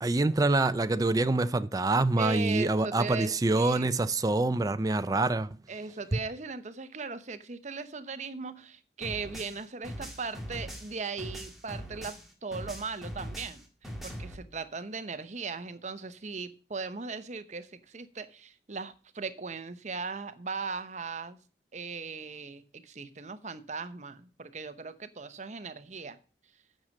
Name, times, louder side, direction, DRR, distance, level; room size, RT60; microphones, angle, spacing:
voice 1, 0.0-5.5, right 2 dB, 20° right, 0.4 m, -26 dB
voice 2, 2.2-3.9 5.7-13.6 14.0-21.4 21.7-26.2, right 4 dB, 40° right, 0.8 m, -38 dB
sound 1, 9.0-12.3 12.5-14.3, equal, ahead, 2.0 m, -41 dB
9.0 x 6.5 x 6.4 m
head